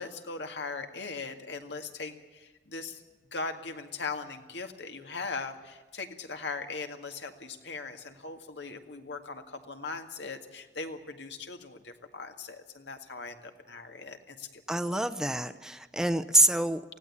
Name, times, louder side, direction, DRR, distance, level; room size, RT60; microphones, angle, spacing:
voice 1, 0.0-3.0 3.3-14.6, left 4 dB, 80° left, 5 dB, 2.0 m, -39 dB
voice 2, 14.7-16.8, right 1 dB, 5° right, 10 dB, 0.7 m, -26 dB
19.5 x 16.0 x 8.6 m, 1.2 s
head